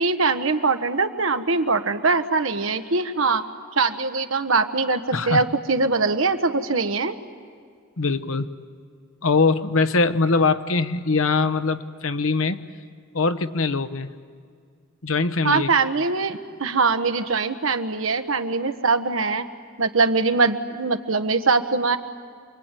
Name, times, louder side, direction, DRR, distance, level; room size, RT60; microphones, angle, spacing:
voice 1, 0.0-3.4 3.7-7.1 15.4-19.5 19.8-22.0, right 4 dB, 75° right, 7 dB, 1.3 m, -22 dB
voice 2, 8.0-8.5 9.2-12.6 13.1-14.1 15.0-15.7, left 4 dB, 85° left, 10 dB, 1.1 m, -22 dB
28.0 x 23.0 x 9.2 m, 2.1 s
head